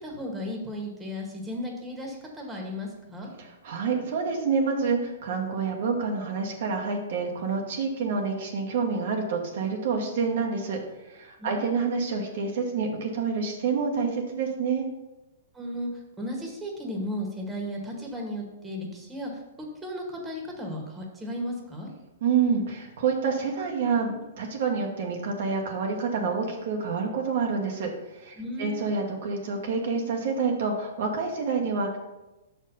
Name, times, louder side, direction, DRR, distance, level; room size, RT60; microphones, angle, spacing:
voice 1, 0.0-3.3 11.4-11.7 15.5-15.9 16.2-19.3 19.6-21.9 28.4-28.9, left 1 dB, 10° right, 0 dB, 1.6 m, -35 dB
voice 2, 3.4-14.8 22.2-32.0, right 5 dB, 60° right, 1 dB, 1.2 m, -28 dB
6.1 x 4.4 x 5.5 m, 1.0 s
hypercardioid pair, 125°, 0 cm